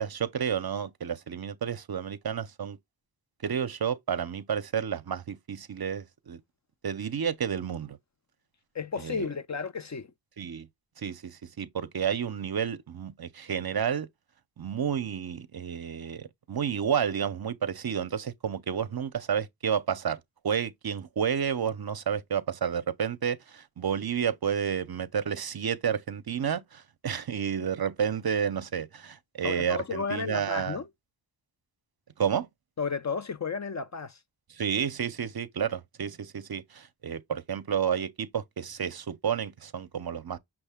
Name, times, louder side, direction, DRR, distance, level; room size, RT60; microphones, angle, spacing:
voice 1, 0.0-2.8 3.4-6.4 6.8-8.0 9.0-9.3 10.4-10.7 11.0-14.1 14.6-30.8 32.2-32.5 34.5-40.4, right 8 dB, 55° right, 0.6 m, -31 dB
voice 2, 8.7-10.1 29.4-30.9 32.8-34.2, left 5 dB, 40° left, 0.4 m, -33 dB
6.0 x 2.1 x 3.4 m
wide cardioid pair, 50°, 45 cm